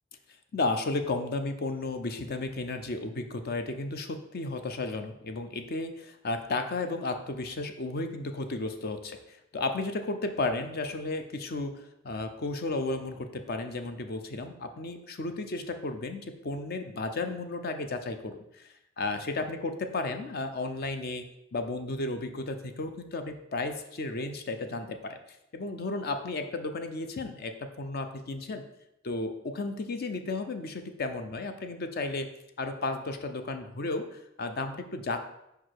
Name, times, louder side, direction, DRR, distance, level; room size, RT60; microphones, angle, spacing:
voice 1, 0.5-21.2 21.5-25.2 25.5-28.6 29.0-32.3 32.6-35.2, left 2 dB, 50° left, 7 dB, 0.5 m, -33 dB
4.9 x 4.7 x 4.6 m, 0.84 s
head